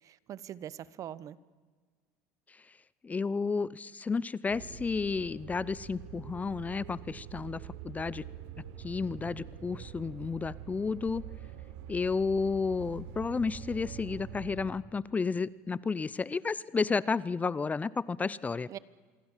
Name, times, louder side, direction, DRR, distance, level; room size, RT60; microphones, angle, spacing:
voice 1, 0.0-1.4 18.2-18.3 18.7-18.8, right 10 dB, 45° right, 19 dB, 1.1 m, -43 dB
voice 2, 3.0-7.6 7.8-8.2 8.8-11.3 11.9-18.7, left 4 dB, 20° left, 20 dB, 0.7 m, -32 dB
sound 1, 4.5-14.7, right 9 dB, 80° right, 3.6 m, -45 dB
27.5 x 23.0 x 7.4 m, 1.5 s
supercardioid pair, 105°, 8 cm